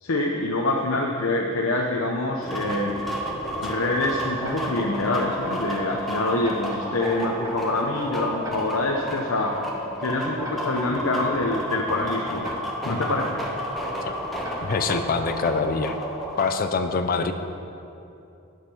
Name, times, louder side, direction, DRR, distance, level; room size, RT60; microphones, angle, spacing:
voice 1, 0.0-2.9 3.6-9.5 10.0-12.5 12.8-13.4, left 2 dB, 80° left, 0 dB, 0.8 m, -25 dB
sound 1, 2.4-16.5, equal, ahead, 1.2 m, -31 dB
Tick-tock, 4.4-4.9 5.4-5.8 6.4-6.9 7.4-7.8 8.4-8.9 9.4-9.8 10.4-10.9 11.4-11.8 12.4-12.9 13.4-13.8 14.4-14.9 15.4-15.8, right 1 dB, 15° right, 1.4 m, -43 dB
voice 2, 14.6-16.0 16.4-17.3, left 4 dB, 45° left, 8 dB, 0.5 m, -24 dB
10.5 x 6.6 x 6.3 m, 2.8 s
head